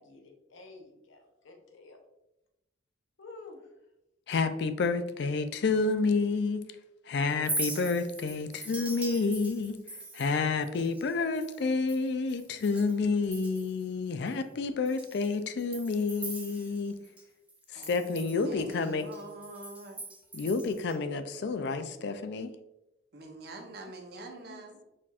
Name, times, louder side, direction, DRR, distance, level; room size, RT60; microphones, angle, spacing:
voice 1, 0.0-2.0 3.2-3.6, left 3 dB, 90° left, 2 dB, 0.8 m, -50 dB
voice 2, 4.3-6.6 7.1-17.0 17.7-19.1 20.3-22.5 24.5-24.6, left 4 dB, 65° left, 10 dB, 0.4 m, -29 dB
Chink clink, 7.3-13.0 13.2-13.8 14.3-14.4 14.9-17.2 17.5-21.0, right 1 dB, 5° right, 0.5 m, -41 dB
voice 3, 17.7-20.0 23.1-24.8, right 2 dB, 55° right, 2 dB, 0.8 m, -45 dB
4.2 x 4.2 x 2.4 m, 0.93 s
head